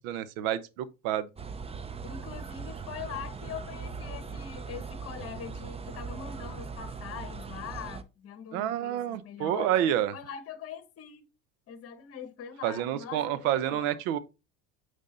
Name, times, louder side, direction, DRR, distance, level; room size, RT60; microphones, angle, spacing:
voice 1, 0.0-1.3 8.5-10.1 12.6-14.2, right 11 dB, 70° right, 0.9 m, -29 dB
sound 1, 1.4-8.0, right 5 dB, 15° right, 0.6 m, -40 dB
voice 2, 2.0-9.7 10.1-11.2 11.7-13.9, left 8 dB, 35° left, 1.1 m, -42 dB
8.4 x 3.7 x 3.9 m
hypercardioid pair, 90°, 41 cm